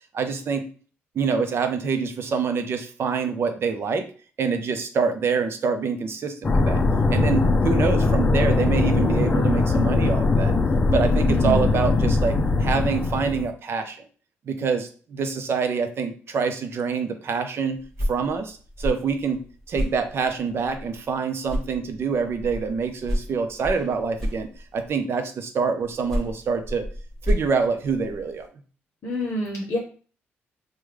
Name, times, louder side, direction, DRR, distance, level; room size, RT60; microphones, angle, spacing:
voice 1, 0.1-0.7 1.2-4.1 4.4-6.8 7.1-10.5 10.9-14.0 14.5-17.8 18.1-19.4 19.7-26.8 27.2-28.5, right 5 dB, 55° right, 7 dB, 0.5 m, -26 dB
sound 1, 6.4-13.5, left 3 dB, 30° left, 0.4 m, -21 dB
voice 2, 11.3-11.7 29.0-29.8, equal, 55° left, 1 dB, 0.7 m, -27 dB
sound 2, 17.8-21.2 21.4-25.0 25.8-28.5, equal, 10° left, 1.0 m, -31 dB
3.2 x 2.2 x 3.3 m, 0.40 s
cardioid pair, 85°, 5 cm